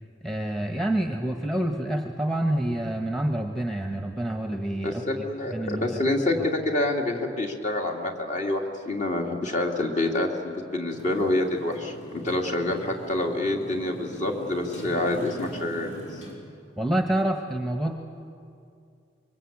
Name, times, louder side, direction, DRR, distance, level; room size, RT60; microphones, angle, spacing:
voice 1, 0.2-5.0 5.5-5.9 16.8-17.9, right 1 dB, 5° left, 4 dB, 1.3 m, -27 dB
voice 2, 4.8-15.9, left 1 dB, 40° left, 1 dB, 2.8 m, -27 dB
Motorcycle, 10.9-16.4, equal, 80° left, 5.6 m, -41 dB
26.0 x 23.0 x 8.7 m, 2.4 s
head